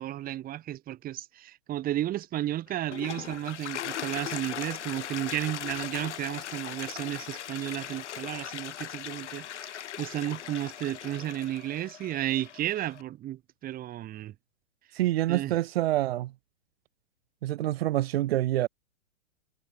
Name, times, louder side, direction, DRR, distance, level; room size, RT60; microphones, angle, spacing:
voice 1, 0.0-14.3 15.3-15.6, right 13 dB, 25° right, 5.6 m, -33 dB
Toilet flush, 2.7-13.0, left 10 dB, 70° left, 4.4 m, -39 dB
voice 2, 14.9-16.3 17.4-18.7, right 14 dB, 55° right, 4.1 m, -26 dB
hypercardioid pair, 145°, 37 cm